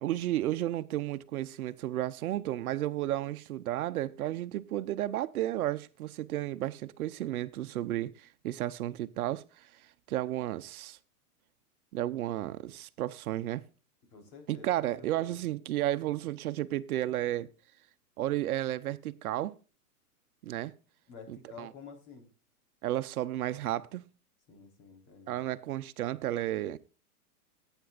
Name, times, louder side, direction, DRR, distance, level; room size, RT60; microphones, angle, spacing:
voice 1, 0.0-9.7 10.1-11.0 11.9-13.6 14.5-17.5 18.2-19.5 20.4-20.7 21.3-21.7 22.8-24.0 25.3-26.8, right 14 dB, 70° right, 0.8 m, -33 dB
voice 2, 14.1-15.4 21.1-22.3 24.5-25.5, left 5 dB, 40° left, 3.9 m, -50 dB
17.0 x 9.0 x 2.4 m
hypercardioid pair, 130°, 46 cm